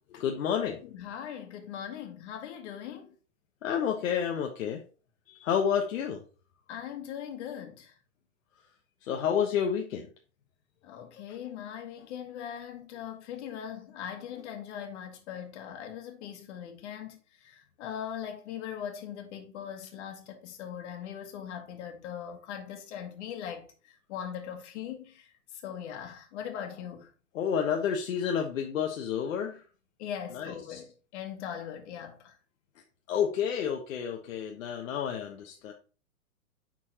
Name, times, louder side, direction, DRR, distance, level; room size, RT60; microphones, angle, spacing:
voice 1, 0.1-0.8 3.6-4.8 5.3-6.2 9.0-10.1 27.3-29.6 30.3-30.8 33.1-35.7, left 8 dB, 70° left, 1.2 m, -30 dB
voice 2, 0.9-3.1 6.7-7.9 10.8-17.2 17.4-23.7 24.1-25.3 25.6-27.1 30.0-30.9 31.1-32.3, left 9 dB, 55° left, 2.1 m, -40 dB
10.0 x 4.5 x 2.9 m
hypercardioid pair, 135°, 42 cm